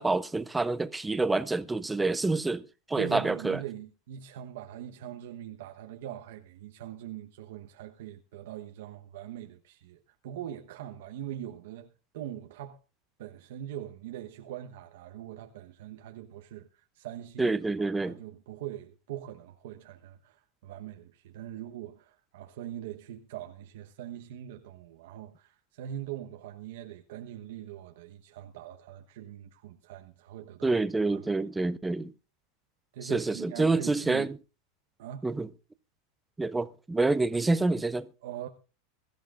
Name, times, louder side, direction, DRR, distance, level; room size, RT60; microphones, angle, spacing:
voice 1, 0.0-3.6 17.4-18.2 30.6-32.1 33.1-34.3 35.2-35.5 36.4-38.1, right 3 dB, 10° right, 0.6 m, -27 dB
voice 2, 3.0-12.8 13.2-30.8 31.1-31.4 32.9-34.3 35.0-35.3 38.2-38.5, right 11 dB, 75° right, 1.1 m, -42 dB
22.0 x 13.5 x 2.5 m
supercardioid pair, 140°, 0 cm